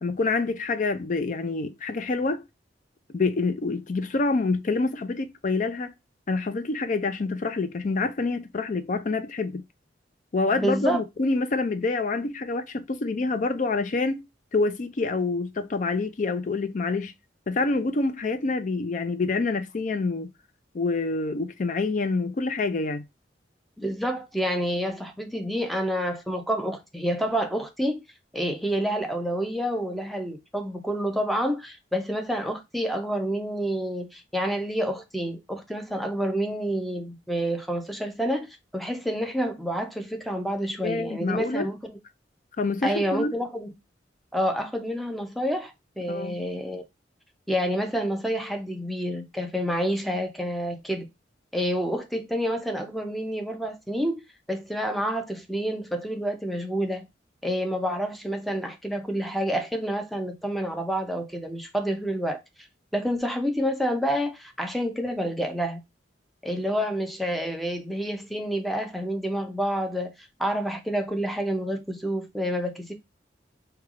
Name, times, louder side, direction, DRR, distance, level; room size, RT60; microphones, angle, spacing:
voice 1, 0.0-2.4 3.1-5.9 6.3-9.6 10.3-14.2 14.5-17.1 17.5-20.3 20.7-23.0 40.8-41.7 42.6-43.3 46.1-46.4, left 3 dB, 45° left, 0.5 m, -27 dB
voice 2, 10.6-11.0 23.8-28.0 28.3-38.5 38.7-42.0 42.8-43.7 44.3-46.8 47.5-51.1 51.5-54.2 54.5-57.0 57.4-62.4 62.9-65.8 66.4-72.9, equal, ahead, 0.6 m, -28 dB
3.3 x 2.3 x 3.5 m
head